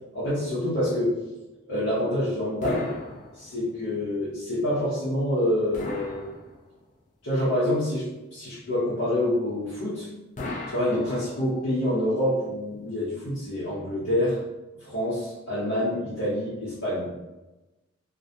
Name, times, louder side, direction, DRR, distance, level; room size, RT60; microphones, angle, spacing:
voice 1, 0.1-1.2 1.7-2.9 3.4-6.3 7.2-10.1 10.7-14.4 14.8-17.1, left 1 dB, 75° left, -9 dB, 0.7 m, -27 dB
sound 1, 2.6-3.8 5.7-7.0 10.4-11.7, left 2 dB, 35° left, 0.3 m, -37 dB
2.3 x 2.1 x 2.7 m, 1.1 s
head